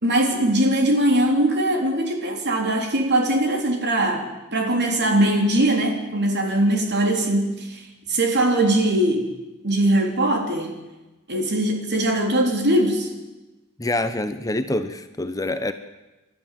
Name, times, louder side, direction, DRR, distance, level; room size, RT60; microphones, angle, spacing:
voice 1, 0.0-7.8 8.1-9.3 9.6-10.7 11.3-13.1, right 1 dB, 50° right, 3 dB, 3.6 m, -21 dB
voice 2, 13.8-15.7, left 2 dB, 15° left, 9 dB, 0.8 m, -26 dB
30.0 x 12.5 x 7.6 m, 1.1 s
head